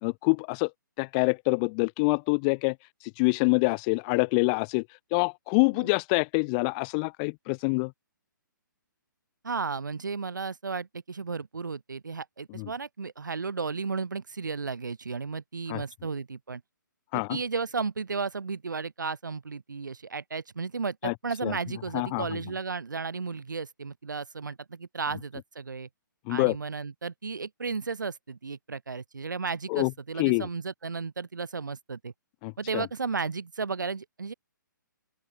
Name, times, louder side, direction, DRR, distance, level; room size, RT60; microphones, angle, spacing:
voice 1, 0.0-0.7 1.0-2.8 3.0-4.9 5.1-7.9 12.6-12.7 15.7-15.8 17.1-17.4 21.0-21.1 21.4-21.5 21.9-22.4 26.3-26.6 29.7-29.9 30.2-30.5 32.4-32.9, left 34 dB, 25° left, 0.8 m, -26 dB
voice 2, 9.4-16.6 17.1-25.9 26.3-32.1 32.6-34.3, right 4 dB, 65° right, 5.6 m, -34 dB
open air
figure-of-eight pair, 130°, 11 cm